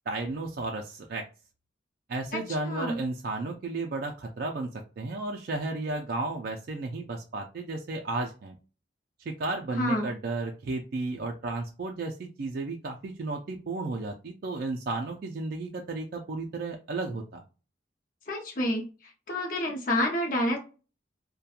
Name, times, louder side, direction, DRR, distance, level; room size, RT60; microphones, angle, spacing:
voice 1, 0.1-1.3 2.1-8.6 9.2-17.4, right 3 dB, 55° right, 2 dB, 0.3 m, -33 dB
voice 2, 2.7-3.0 9.8-10.1 18.3-18.9 19.3-20.6, left 1 dB, 50° left, 1 dB, 0.6 m, -28 dB
2.8 x 2.2 x 2.3 m, 0.33 s
head